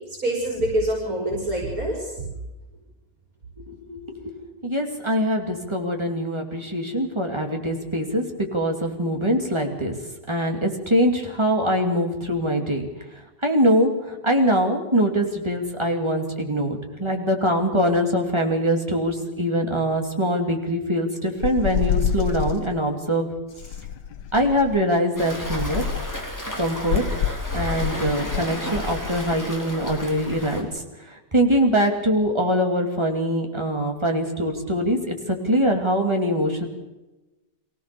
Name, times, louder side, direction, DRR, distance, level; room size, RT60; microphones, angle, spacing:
voice 1, 0.1-2.1, right 1 dB, 50° right, -2 dB, 5.8 m, -25 dB
voice 2, 3.7-4.3 4.6-9.9 10.3-12.9 13.4-23.3 24.3-25.9 26.6-27.0 27.5-36.7, equal, 15° right, 2 dB, 2.6 m, -23 dB
sound 1, 21.4-22.7 23.6-24.8 25.5-26.2 26.9-28.5, left 7 dB, 75° left, 1.5 m, -27 dB
Waves surf, 25.2-30.6, left 2 dB, 10° left, 3.0 m, -31 dB
24.0 x 17.0 x 6.9 m, 1.0 s
omnidirectional pair, 1.9 m